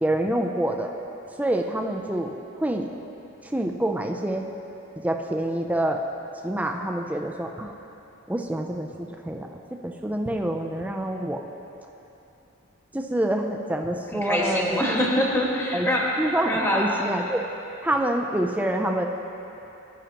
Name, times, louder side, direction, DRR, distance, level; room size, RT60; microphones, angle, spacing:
voice 1, 0.0-0.9 1.4-2.9 3.4-4.4 5.0-6.0 6.4-7.7 8.3-9.5 9.8-11.4 12.9-15.0 15.7-15.9 16.2-17.4 17.8-19.1, right 1 dB, 5° right, 2 dB, 0.4 m, -26 dB
voice 2, 14.1-17.0, left 1 dB, 15° left, -3 dB, 1.3 m, -24 dB
15.0 x 10.5 x 2.9 m, 2.9 s
head